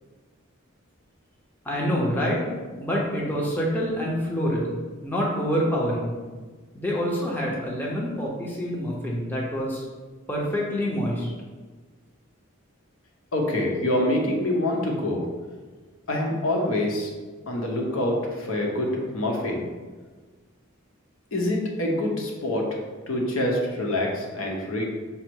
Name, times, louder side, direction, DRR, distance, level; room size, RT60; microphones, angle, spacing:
voice 1, 1.6-2.4 2.7-4.7 5.0-6.1 6.7-9.8 10.3-11.3, equal, 10° left, -4 dB, 0.7 m, -26 dB
voice 2, 13.3-15.2 16.1-17.1 17.5-19.6 21.3-22.8 23.1-24.8, left 1 dB, 80° left, -1 dB, 0.9 m, -25 dB
5.5 x 2.0 x 4.6 m, 1.4 s
head